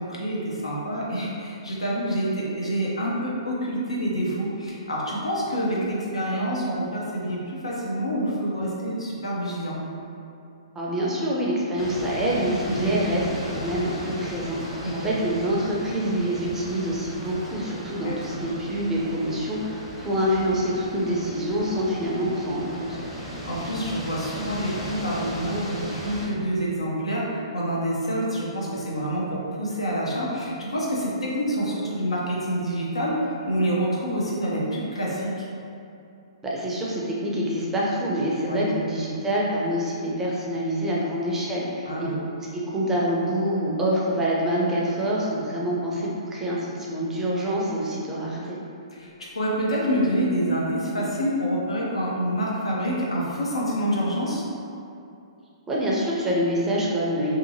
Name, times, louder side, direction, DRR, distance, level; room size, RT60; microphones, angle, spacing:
voice 1, 0.0-9.8 12.7-13.0 14.8-15.1 18.0-18.4 23.2-35.5 38.5-38.6 41.8-42.1 48.9-54.4, equal, 85° left, -5 dB, 0.7 m, -27 dB
voice 2, 10.8-23.0 36.4-42.1 42.5-48.6 55.7-57.4, equal, 10° right, -5 dB, 0.5 m, -26 dB
sound 1, 11.8-26.3, equal, 30° left, 0.8 m, -37 dB
2.7 x 2.5 x 2.7 m, 2.7 s
hypercardioid pair, 125°, 3 cm